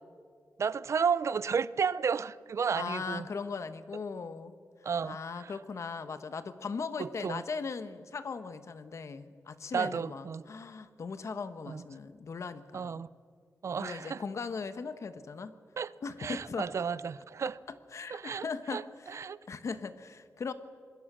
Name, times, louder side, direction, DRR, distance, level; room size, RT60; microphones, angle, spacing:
voice 1, 0.6-3.3 4.8-5.5 7.0-7.4 9.7-10.4 11.7-11.8 12.7-13.1 13.6-14.2 15.8-15.9 16.2-17.6 18.1-18.5 18.7-18.8 19.1-19.4, right 6 dB, 55° right, 19 dB, 0.5 m, -32 dB
voice 2, 2.7-4.5 5.0-13.0 13.8-15.5 16.0-16.7 17.9-19.2 19.5-20.5, left 5 dB, 55° left, 11 dB, 1.2 m, -39 dB
26.0 x 21.0 x 6.2 m, 2.1 s
wide cardioid pair, 150°, 6 cm